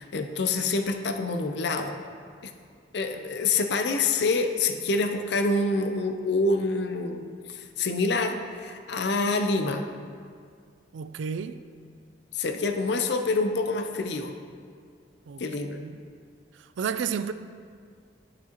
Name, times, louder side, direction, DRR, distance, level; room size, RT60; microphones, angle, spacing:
voice 1, 0.0-2.0 2.4-2.5 2.9-7.2 7.5-9.8 12.3-14.4 15.4-15.8, left 3 dB, 65° left, 0.5 m, -26 dB
voice 2, 10.9-11.6 15.3-15.4 15.7-16.0 16.6-17.3, right 6 dB, 80° right, 0.3 m, -32 dB
11.0 x 6.0 x 2.9 m
head